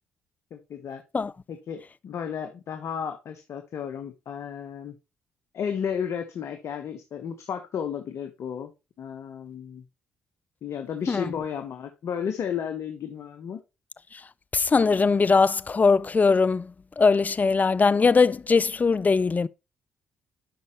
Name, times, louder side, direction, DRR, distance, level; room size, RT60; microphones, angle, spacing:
voice 1, 0.5-1.0 1.5-4.9 5.5-8.7 9.0-9.8 10.6-13.6, left 7 dB, 60° left, 1.1 m, -33 dB
voice 2, 14.5-16.7 17.0-19.5, left 4 dB, 30° left, 0.4 m, -20 dB
12.0 x 5.4 x 3.0 m
hypercardioid pair, 50°, 5 cm